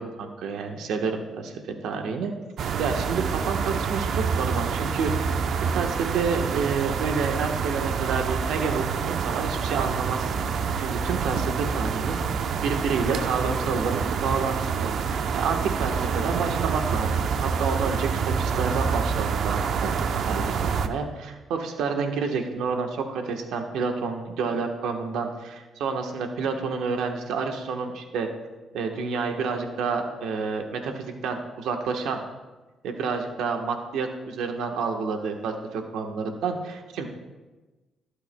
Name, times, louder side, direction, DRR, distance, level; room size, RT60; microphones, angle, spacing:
voice 1, 0.0-1.5 1.8-2.3 2.8-5.1 5.6-10.4 10.8-17.1 17.4-19.9 20.2-28.3 28.7-32.2 32.8-37.1, right 5 dB, 85° right, 4 dB, 1.2 m, -29 dB
sound 1, 2.6-20.9, right 6 dB, 65° right, 0.7 m, -27 dB
20.5 x 8.2 x 2.2 m, 1.2 s
cardioid pair, 90°, 0 cm